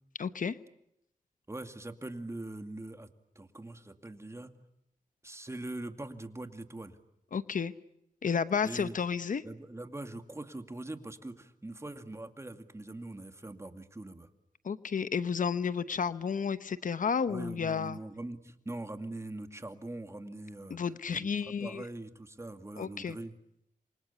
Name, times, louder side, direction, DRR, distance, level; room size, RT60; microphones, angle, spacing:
voice 1, 0.2-0.6 7.3-7.7 8.2-9.4 14.6-18.0 20.7-21.8 22.8-23.2, left 6 dB, 65° left, 14 dB, 1.0 m, -32 dB
voice 2, 1.5-3.1 3.4-4.5 5.2-7.0 8.6-9.0 9.4-14.3 17.3-20.8 21.1-23.3, right 2 dB, 20° right, 8 dB, 2.3 m, -42 dB
28.0 x 24.5 x 8.4 m, 0.81 s
wide cardioid pair, 85°, 14 cm